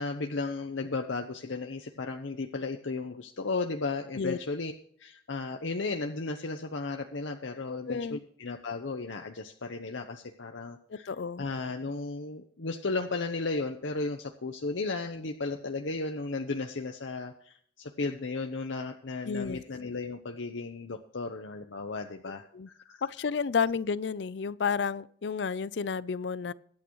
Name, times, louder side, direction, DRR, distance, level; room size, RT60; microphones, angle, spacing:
voice 1, 0.0-4.7 5.0-11.1 11.4-22.5 22.7-23.0, left 3 dB, 85° left, 0.8 m, -34 dB
voice 2, 7.7-8.2 10.9-11.4 19.3-19.6 22.5-22.7 23.0-26.5, left 5 dB, 70° left, 0.5 m, -31 dB
22.5 x 8.6 x 3.1 m
head